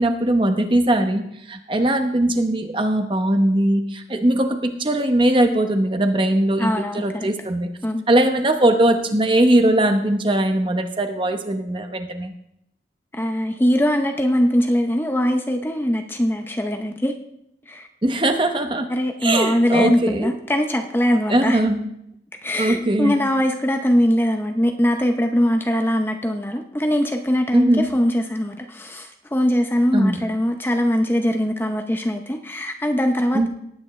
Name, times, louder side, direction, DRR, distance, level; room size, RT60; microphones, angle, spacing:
voice 1, 0.0-7.7 8.1-12.3 18.0-18.9 19.2-20.3 21.3-21.9 22.6-23.2 27.5-27.9 29.9-30.2 33.3-33.5, right 1 dB, 30° right, 6 dB, 1.0 m, -20 dB
voice 2, 6.6-7.3 7.8-8.0 13.1-17.1 17.7-17.9 18.9-21.6 22.4-33.5, equal, 10° left, 5 dB, 0.6 m, -21 dB
18.5 x 9.2 x 3.2 m, 0.77 s
head